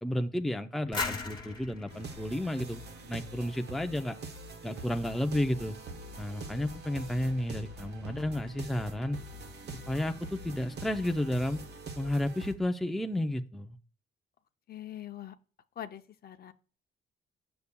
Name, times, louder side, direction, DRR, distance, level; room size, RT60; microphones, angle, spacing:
voice 1, 0.0-4.2 4.6-5.8 6.2-9.2 9.9-11.6 12.0-13.8, left 1 dB, ahead, 5 dB, 0.5 m, -32 dB
sound 1, 0.9-3.6, left 4 dB, 25° left, 1.5 m, -38 dB
sound 2, 1.9-12.5, right 2 dB, 60° right, 1.1 m, -45 dB
sound 3, 4.9-11.8, right 1 dB, 25° right, 1.3 m, -55 dB
voice 2, 14.7-15.3 15.8-16.5, left 11 dB, 50° left, 8 dB, 0.6 m, -43 dB
8.1 x 6.9 x 2.2 m, 0.38 s
cardioid pair, 90°, 20 cm